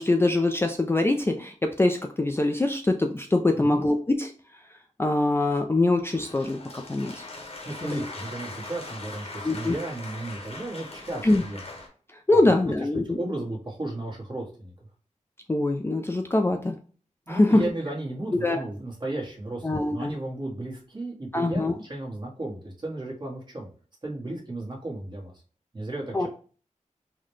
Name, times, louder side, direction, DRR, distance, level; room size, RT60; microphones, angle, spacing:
voice 1, 0.0-4.3 5.0-7.3 7.8-8.1 9.4-9.7 11.2-11.4 12.3-13.2 15.5-16.8 17.3-17.6 18.4-18.6 19.6-20.2 21.3-21.7 26.1-26.3, left 2 dB, 20° left, 3 dB, 0.3 m, -23 dB
sound 1, 6.1-11.9, left 2 dB, 50° left, 0.9 m, -41 dB
voice 2, 7.6-11.6 12.4-12.5 12.9-14.7 17.3-23.7 24.0-25.3 25.7-26.3, right 2 dB, 35° right, -2 dB, 1.2 m, -34 dB
4.0 x 2.1 x 3.1 m, 0.40 s
wide cardioid pair, 90°, 13 cm